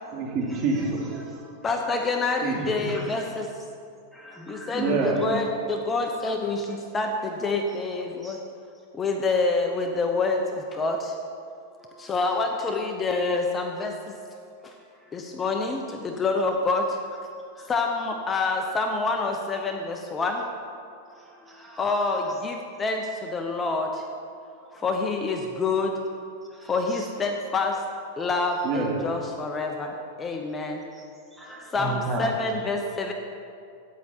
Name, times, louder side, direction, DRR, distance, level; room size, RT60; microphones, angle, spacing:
voice 1, 0.1-1.5 2.4-2.5 4.8-5.2 28.6-29.0, right 4 dB, 45° right, -2 dB, 2.8 m, -27 dB
voice 2, 1.6-3.5 4.5-8.4 8.9-11.1 12.0-14.2 14.6-14.7 15.1-17.0 17.7-20.4 21.8-24.0 24.7-26.0 26.6-27.8 28.2-30.9 31.7-33.1, left 3 dB, 20° left, 3 dB, 0.9 m, -27 dB
voice 3, 2.6-3.0 4.1-5.2 8.2-8.4 11.8-12.1 14.8-15.2 17.5-17.7 21.1-21.9 24.6-24.8 26.5-27.1 30.9-31.0 31.3-32.3, right 1 dB, 5° right, -3 dB, 2.0 m, -37 dB
13.5 x 9.4 x 4.5 m, 2.4 s
hypercardioid pair, 125°, 0 cm